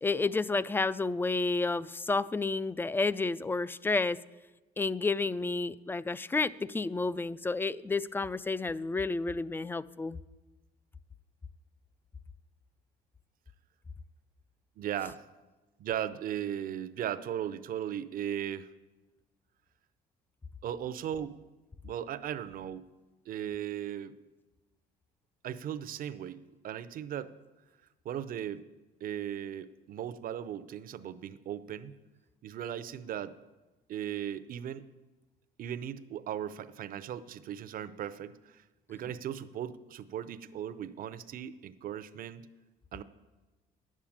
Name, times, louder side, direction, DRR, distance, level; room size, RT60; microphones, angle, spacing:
voice 1, 0.0-4.2 4.8-10.2, left 3 dB, 15° left, 19 dB, 0.3 m, -30 dB
voice 2, 14.8-15.2 15.8-18.7 20.6-21.4 21.8-22.9 23.3-24.2 25.4-27.3 28.0-28.6 29.0-31.9 32.4-33.3 33.9-34.8 35.6-38.6 38.9-42.5 42.9-43.0, right 10 dB, 55° right, 14 dB, 0.7 m, -37 dB
10.5 x 7.4 x 8.7 m, 1.1 s
cardioid pair, 110°, 17 cm